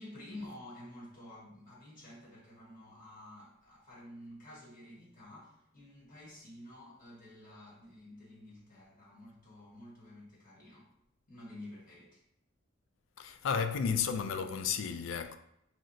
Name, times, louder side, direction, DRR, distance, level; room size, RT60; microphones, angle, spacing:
voice 1, 0.0-10.9 11.3-12.2, left 1 dB, 40° left, 1.3 m, -50 dB
voice 2, 13.2-15.4, left 6 dB, 70° left, 0.3 m, -33 dB
3.1 x 2.8 x 2.6 m
head